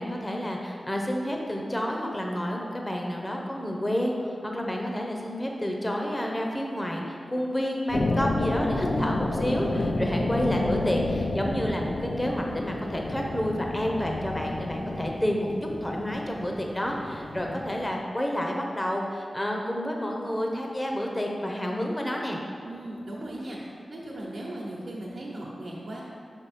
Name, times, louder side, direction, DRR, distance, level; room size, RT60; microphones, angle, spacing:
voice 1, 0.0-15.5 15.8-22.4, equal, 20° left, 0 dB, 0.8 m, -29 dB
sound 1, 7.9-17.8, left 2 dB, 70° left, 0.5 m, -30 dB
voice 2, 8.7-9.1 22.6-26.0, right 1 dB, 65° right, -6 dB, 0.9 m, -37 dB
5.4 x 5.2 x 4.2 m, 2.4 s
cardioid pair, 45°, 0 cm